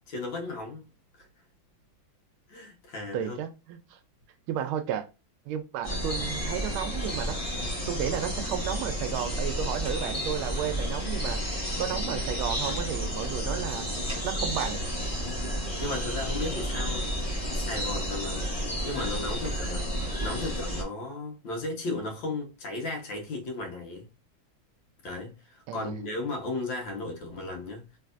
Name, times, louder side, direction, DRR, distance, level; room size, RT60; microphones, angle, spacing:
voice 1, 0.1-0.9 2.5-3.4 15.2-15.5 15.8-17.1 17.5-18.5 18.8-19.9 20.2-24.1 25.0-28.0, left 2 dB, 65° left, 1.7 m, -35 dB
voice 2, 3.1-4.0 4.5-5.1 5.5-7.4 7.9-11.4 11.8-13.9 14.2-14.8 25.7-25.9, right 9 dB, 85° right, 1.4 m, -33 dB
sound 1, 5.8-20.8, equal, 25° left, 0.9 m, -31 dB
3.5 x 3.3 x 2.4 m
omnidirectional pair, 2.3 m